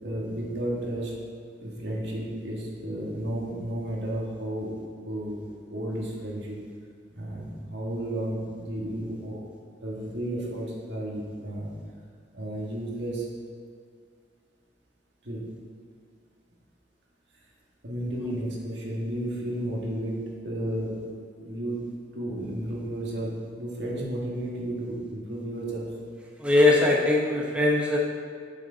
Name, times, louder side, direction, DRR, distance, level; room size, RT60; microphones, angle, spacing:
voice 1, 0.0-1.2 1.6-4.7 5.0-5.4 5.7-6.6 7.1-9.4 9.8-11.7 12.3-13.3 15.2-15.5 17.8-21.0 21.4-21.8 22.1-25.9, right 1 dB, 70° right, -3 dB, 1.6 m, -32 dB
voice 2, 26.4-28.0, left 2 dB, 5° right, -3 dB, 0.8 m, -21 dB
7.9 x 6.4 x 3.9 m, 2.1 s
head